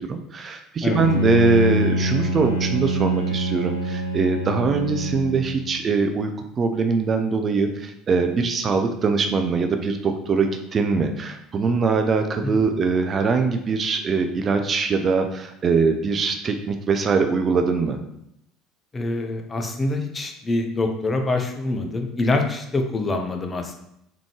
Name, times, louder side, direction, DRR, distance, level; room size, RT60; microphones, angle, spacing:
voice 1, 0.1-6.3 6.6-18.0, right 4 dB, 35° right, 6 dB, 0.4 m, -22 dB
Bowed string instrument, 0.9-5.8, right 1 dB, 85° left, 0.4 m, -25 dB
voice 2, 18.9-23.8, left 2 dB, 25° left, 4 dB, 0.7 m, -25 dB
3.6 x 3.6 x 3.1 m, 0.77 s
figure-of-eight pair, 65°, 0 cm